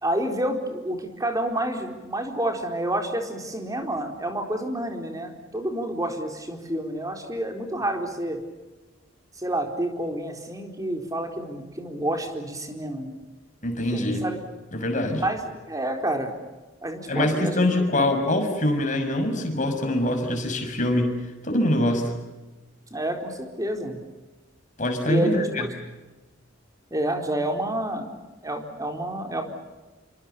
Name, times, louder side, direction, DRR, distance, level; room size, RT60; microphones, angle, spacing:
voice 1, 0.0-8.4 9.4-13.2 13.9-14.4 15.2-16.3 16.8-17.9 22.9-24.0 25.1-25.7 26.9-29.4, right 1 dB, 15° right, 4 dB, 4.3 m, -29 dB
voice 2, 13.6-14.3 14.7-15.2 17.1-21.2 21.4-22.1 24.8-25.6, left 1 dB, 40° left, 4 dB, 6.4 m, -24 dB
28.5 x 25.5 x 7.0 m, 1.1 s
head